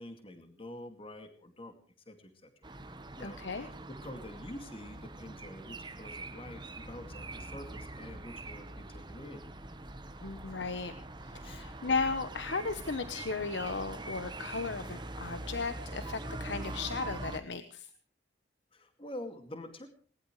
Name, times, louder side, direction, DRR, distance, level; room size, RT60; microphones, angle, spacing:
voice 1, 0.0-1.8 2.1-2.6 3.2-3.6 3.9-9.5 11.4-11.7 18.7-19.9, left 1 dB, 30° left, 7 dB, 2.3 m, -47 dB
sound 1, 2.6-17.4, right 2 dB, 25° right, 1.2 m, -43 dB
voice 2, 3.2-3.7 10.2-10.9 11.2-17.9, left 4 dB, 85° left, 11 dB, 1.0 m, -35 dB
20.5 x 19.5 x 3.2 m, 0.42 s
head